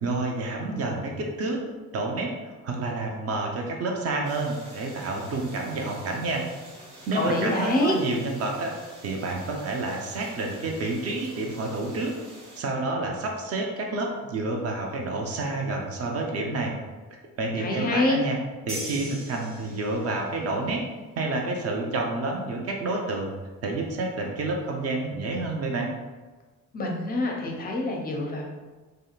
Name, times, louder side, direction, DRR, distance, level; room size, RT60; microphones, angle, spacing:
voice 1, 0.0-1.6 1.9-6.5 7.1-8.7 9.0-12.2 12.5-16.8 17.4-18.4 18.7-20.8 21.2-23.3 23.6-25.9, right 2 dB, 35° right, 1 dB, 0.5 m, -29 dB
sound 1, 4.2-12.6, right 1 dB, 65° right, 0.8 m, -47 dB
voice 2, 7.1-8.0 17.6-18.2 26.7-28.5, left 1 dB, 20° left, 0 dB, 0.5 m, -25 dB
sound 2, 18.7-20.2, right 1 dB, 50° right, 1.3 m, -38 dB
2.7 x 2.4 x 2.4 m, 1.3 s
figure-of-eight pair, 45°, 46 cm